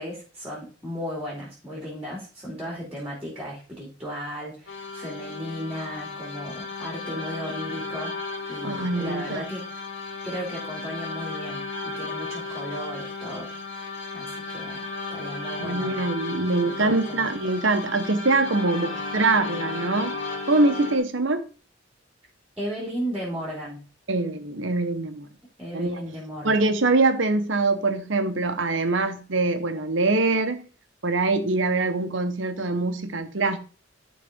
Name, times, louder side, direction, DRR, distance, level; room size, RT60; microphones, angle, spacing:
voice 1, 0.0-8.1 8.5-9.6 10.2-14.8 15.1-16.1 16.6-17.3 22.6-23.8 25.6-26.6, equal, 10° right, 2.5 m, -35 dB
sound 1, 4.7-21.0, left 3 dB, 80° left, 1.9 m, -34 dB
voice 2, 8.6-9.5 15.6-20.2 20.5-21.4 24.1-25.3 25.7-26.0 26.4-30.6 31.0-33.6, right 3 dB, 70° right, 1.1 m, -24 dB
11.0 x 4.1 x 3.6 m
head